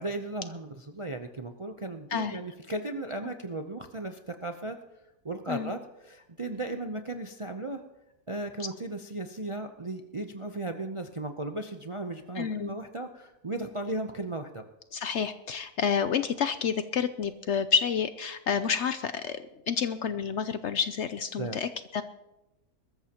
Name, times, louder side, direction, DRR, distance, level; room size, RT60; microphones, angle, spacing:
voice 1, 0.0-4.8 5.2-7.8 8.3-14.6 21.4-21.6, right 2 dB, 35° right, 6 dB, 0.5 m, -36 dB
voice 2, 12.4-12.7 14.9-22.0, left 6 dB, 65° left, 11 dB, 0.8 m, -29 dB
21.5 x 13.5 x 2.9 m, 0.95 s
omnidirectional pair, 1.6 m